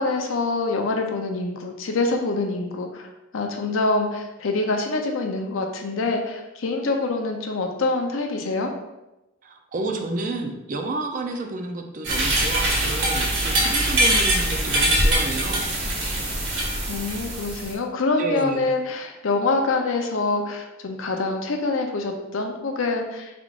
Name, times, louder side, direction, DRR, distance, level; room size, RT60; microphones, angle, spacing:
voice 1, 0.0-3.1 3.3-8.7 16.5-23.3, left 3 dB, 80° left, 3 dB, 0.6 m, -25 dB
voice 2, 9.4-16.1 18.2-18.7, right 2 dB, 40° right, 3 dB, 0.5 m, -30 dB
sound 1, 12.0-17.7, right 1 dB, 60° right, 1.5 m, -23 dB
4.8 x 3.6 x 2.4 m, 0.97 s
head